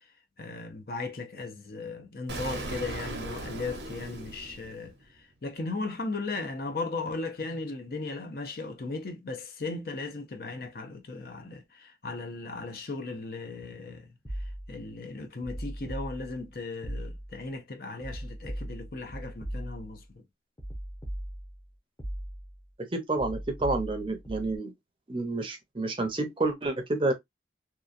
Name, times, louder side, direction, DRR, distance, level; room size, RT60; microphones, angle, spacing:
voice 1, 0.4-14.1 14.7-20.2, left 3 dB, 55° left, 0.6 m, -37 dB
Explosion, 2.3-5.2, right 2 dB, 80° right, 0.7 m, -38 dB
sound 1, 14.2-14.9 15.4-16.5 16.8-17.5 18.0-20.0 20.6-21.6 22.0-22.6 23.2-24.6, equal, 20° left, 0.8 m, -38 dB
voice 2, 22.8-24.7 25.1-27.1, right 2 dB, 30° right, 0.6 m, -29 dB
2.9 x 2.3 x 2.4 m
head